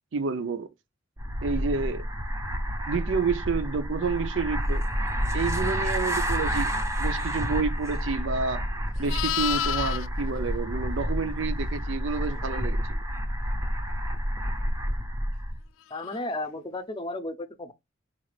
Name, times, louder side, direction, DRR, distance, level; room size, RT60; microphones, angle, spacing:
voice 1, 0.1-0.7 1.4-2.1 2.9-4.8 5.3-6.7 7.0-8.6 9.0-13.0, right 4 dB, 70° right, 0.5 m, -29 dB
sound 1, 1.2-15.6, equal, 15° right, 0.5 m, -29 dB
Livestock farm animals working animals, 8.3-11.6 16.0-16.2, left 10 dB, 80° left, 0.3 m, -32 dB
voice 2, 15.9-17.7, left 2 dB, 25° left, 0.6 m, -34 dB
3.8 x 2.4 x 3.3 m
head